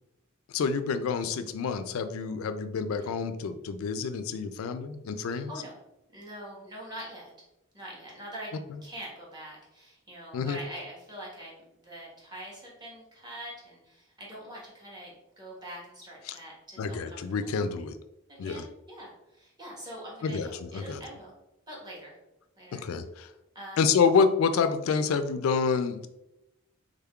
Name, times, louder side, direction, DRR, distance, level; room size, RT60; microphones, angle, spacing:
voice 1, 0.5-5.5 10.3-10.6 16.3-16.4 16.8-18.0 18.4-18.6 20.2-21.0 22.7-23.3 23.8-26.1, left 5 dB, 75° left, 10 dB, 0.3 m, -28 dB
voice 2, 5.3-5.7 6.1-7.3 7.7-8.5 8.8-17.5 18.3-21.3 21.7-22.2 22.5-22.9 23.5-23.9, right 1 dB, 20° right, -5 dB, 1.1 m, -44 dB
3.6 x 3.6 x 2.3 m, 0.91 s
head